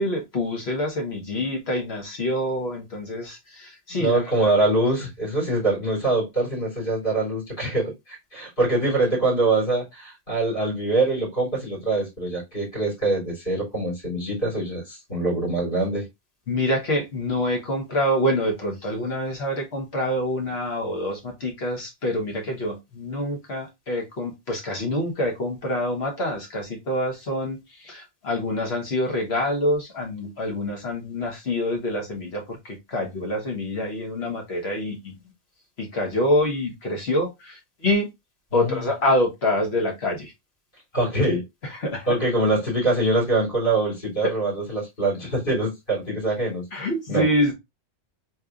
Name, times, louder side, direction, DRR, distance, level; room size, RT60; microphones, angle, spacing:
voice 1, 0.0-4.5 16.5-35.1 35.8-38.1 38.5-40.3 41.7-42.2 46.7-47.5, left 1 dB, 65° left, 1.5 m, -26 dB
voice 2, 4.0-16.1 38.5-38.9 40.9-41.4 42.1-46.7 47.1-47.3, right 2 dB, 50° left, 3.1 m, -24 dB
4.2 x 3.2 x 2.4 m
omnidirectional pair, 1.2 m